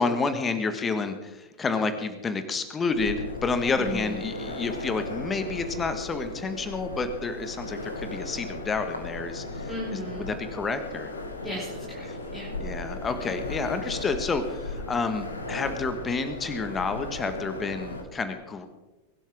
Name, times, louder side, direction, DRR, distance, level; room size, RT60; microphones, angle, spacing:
voice 1, 0.0-11.1 12.6-18.7, left 4 dB, 20° left, 9 dB, 1.6 m, -29 dB
sound 1, 2.9-18.0, left 2 dB, 75° left, 2.0 m, -36 dB
voice 2, 3.7-4.2 9.7-10.3 11.4-12.5, left 1 dB, ahead, -9 dB, 5.7 m, -36 dB
23.0 x 12.5 x 3.7 m, 1.1 s
figure-of-eight pair, 90°, 0 cm